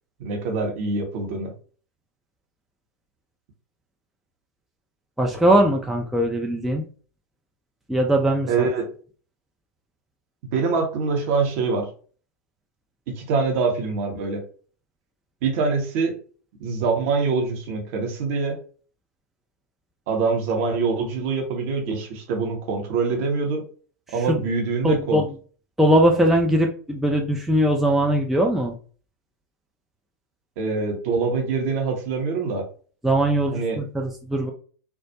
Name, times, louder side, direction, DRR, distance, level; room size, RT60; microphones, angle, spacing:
voice 1, 0.2-1.5 8.5-8.9 10.5-11.9 13.1-14.4 15.4-16.2 16.6-18.6 20.1-23.6 24.1-25.2 30.6-32.6 33.5-33.8, right 4 dB, 50° right, 2 dB, 0.8 m, -24 dB
voice 2, 5.2-6.8 7.9-8.7 24.2-24.5 24.8-25.3 25.8-28.8 33.0-34.5, right 1 dB, 5° right, 1 dB, 0.3 m, -20 dB
2.2 x 2.0 x 2.7 m, 0.40 s
figure-of-eight pair, 95°, 9 cm